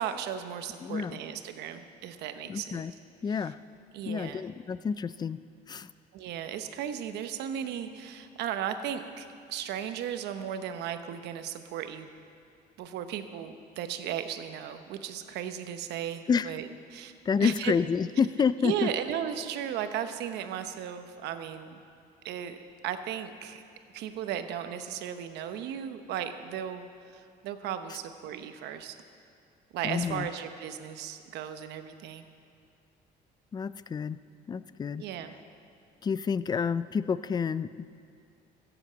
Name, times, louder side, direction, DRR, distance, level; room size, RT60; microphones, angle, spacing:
voice 1, 0.0-2.8 3.3-3.4 3.9-4.4 6.1-12.1 12.8-17.1 17.4-17.7 18.6-21.8 22.2-22.6 22.8-23.6 23.9-26.8 27.1-29.0 29.7-32.2 35.0-35.3, right 9 dB, 80° right, 9 dB, 0.9 m, -36 dB
voice 2, 0.8-1.2 2.5-2.9 3.2-3.6 4.1-5.4 5.7-5.9 16.3-16.5 17.3-18.9 29.8-30.3 33.5-34.2 34.5-35.0 36.0-37.9, left 6 dB, 25° left, 16 dB, 0.4 m, -29 dB
15.0 x 7.9 x 7.9 m, 2.3 s
cardioid pair, 110°, 17 cm